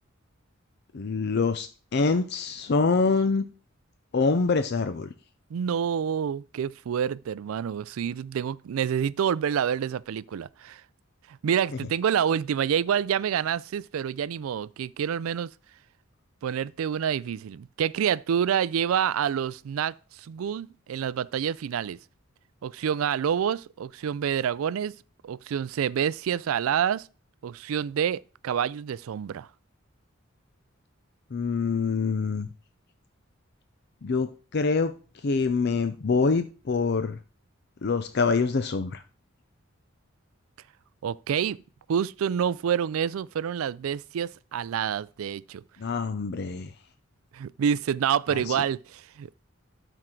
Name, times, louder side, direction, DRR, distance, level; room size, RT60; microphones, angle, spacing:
voice 1, 0.9-3.5 4.1-5.1 31.3-32.5 34.0-34.9 35.2-37.2 37.8-39.0 45.8-46.7 48.3-48.5, left 4 dB, 50° left, 0.5 m, -25 dB
voice 2, 5.5-10.8 11.3-15.5 16.4-22.0 22.6-24.9 25.2-27.1 27.4-29.5 41.0-41.6 41.9-45.6 47.3-49.4, right 8 dB, 85° right, 0.3 m, -28 dB
12.0 x 4.6 x 3.7 m
head